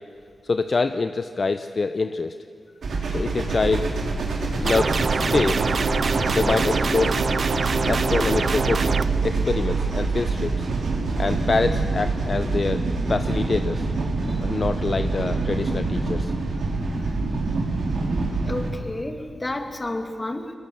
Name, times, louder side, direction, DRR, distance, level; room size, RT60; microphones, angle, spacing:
voice 1, 0.4-2.4 3.1-3.9 4.6-5.7 6.3-7.1 7.8-10.7 11.2-12.8 13.1-13.9 14.4-16.3, left 4 dB, 50° left, 9 dB, 0.7 m, -25 dB
sound 1, 2.8-18.7, right 3 dB, 80° right, 3.7 m, -25 dB
sound 2, 4.7-9.0, right 4 dB, 55° right, 0.5 m, -25 dB
voice 2, 18.4-20.5, left 1 dB, 25° left, 5 dB, 2.4 m, -31 dB
21.5 x 21.5 x 7.2 m, 2.4 s
cardioid pair, 60°, 0 cm